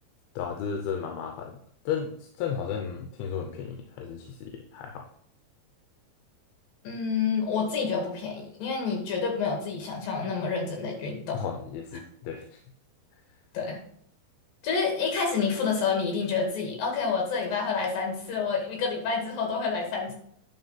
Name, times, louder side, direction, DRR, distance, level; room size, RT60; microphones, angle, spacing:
voice 1, 0.4-1.6 1.9-5.0 11.3-12.6, left 7 dB, 85° left, 3 dB, 2.7 m, -34 dB
voice 2, 6.8-11.4 13.5-13.8 14.6-20.1, left 5 dB, 65° left, 1 dB, 3.8 m, -28 dB
9.7 x 3.9 x 5.7 m, 0.64 s
omnidirectional pair, 4.4 m